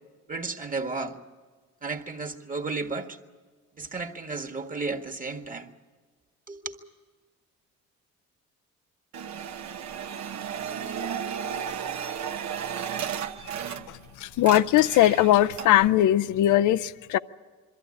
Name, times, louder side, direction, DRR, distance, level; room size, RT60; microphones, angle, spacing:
voice 1, 0.3-1.2 1.8-3.2 3.8-5.7 6.5-6.8, right 3 dB, 25° right, 1.6 m, -33 dB
sound 1, 9.1-14.1 14.3-15.9, right 8 dB, 65° right, 1.0 m, -34 dB
voice 2, 13.7-17.2, left 13 dB, 80° left, 0.6 m, -21 dB
22.5 x 14.5 x 9.7 m
cardioid pair, 90°, 30 cm